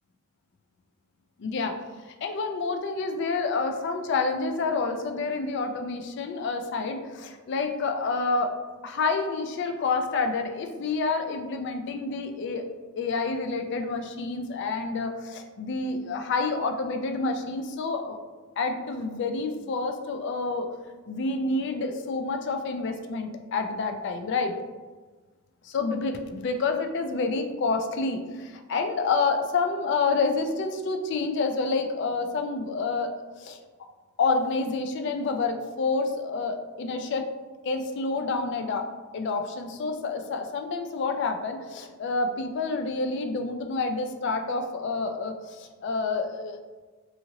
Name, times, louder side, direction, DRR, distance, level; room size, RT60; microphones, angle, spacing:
voice 1, 1.4-1.7 2.2-8.5 8.8-12.6 13.0-18.2 18.6-20.7 21.1-24.5 25.7-33.1 33.4-33.6 34.2-37.3 37.6-38.9 39.1-46.6, left 4 dB, 55° left, 6 dB, 0.3 m, -28 dB
2.8 x 2.4 x 2.8 m, 1.3 s
head